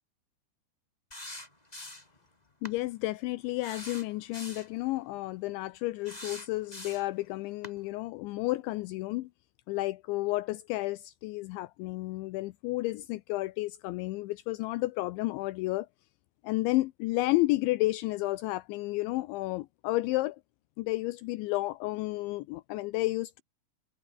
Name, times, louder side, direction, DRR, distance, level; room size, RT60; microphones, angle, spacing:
Plastic Bag Whip, 1.1-2.2 2.6-2.8 3.6-4.7 6.0-7.2 7.6-7.8, left 1 dB, 10° left, 4.7 m, -44 dB
voice 1, 2.6-9.3 9.7-15.9 16.4-20.4 20.8-23.4, left 19 dB, 80° left, 3.0 m, -31 dB
omnidirectional pair, 5.5 m